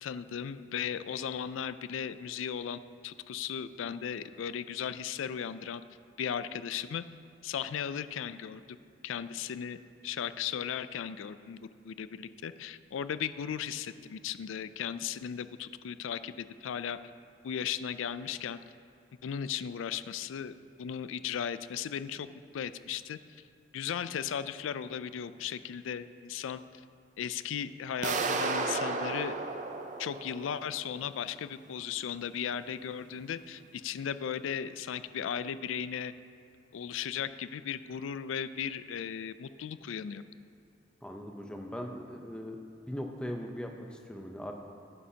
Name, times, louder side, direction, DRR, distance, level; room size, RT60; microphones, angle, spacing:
voice 1, 0.0-5.8 6.2-7.0 7.4-8.8 9.0-9.8 10.0-11.6 11.8-17.0 17.4-18.6 19.2-22.3 22.5-23.2 23.7-26.6 27.2-29.3 30.0-36.1 36.7-40.2, left 8 dB, 90° left, 14 dB, 0.3 m, -36 dB
sound 1, 28.0-30.9, right 3 dB, 40° right, 0.5 m, -33 dB
voice 2, 41.0-42.6 42.9-44.5, equal, 5° left, 2 dB, 0.6 m, -39 dB
11.5 x 9.9 x 2.8 m, 2.5 s
head